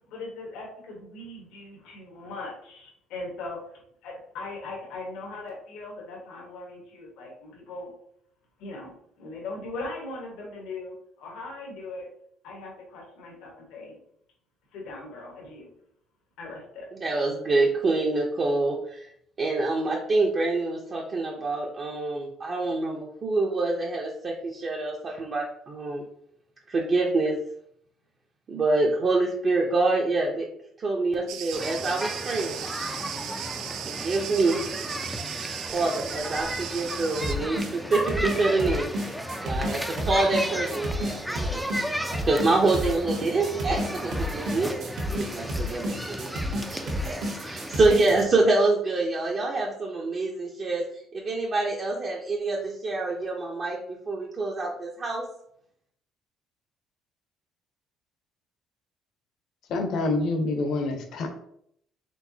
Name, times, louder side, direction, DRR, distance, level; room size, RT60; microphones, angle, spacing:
voice 1, 0.1-7.9 8.6-12.1 12.4-14.0 14.7-15.7 16.4-17.0, left 2 dB, 85° left, -1 dB, 1.4 m, -39 dB
voice 2, 17.0-19.1 19.4-26.0 26.7-27.4 28.5-30.5 30.8-32.6 33.9-34.6 35.7-38.9 39.4-41.7 42.0-44.7 45.1-50.8 51.1-53.8 54.1-55.2, right 3 dB, 35° right, -2 dB, 0.7 m, -26 dB
Cricket, 31.3-37.3, right 11 dB, 80° right, 0.4 m, -37 dB
sound 1, 31.5-48.0, equal, ahead, 0.4 m, -34 dB
sound 2, 37.2-48.2, equal, 60° right, 1.3 m, -31 dB
voice 3, 59.7-61.3, left 2 dB, 60° left, 5 dB, 0.8 m, -26 dB
4.5 x 3.8 x 2.7 m, 0.69 s
cardioid pair, 145°, 0 cm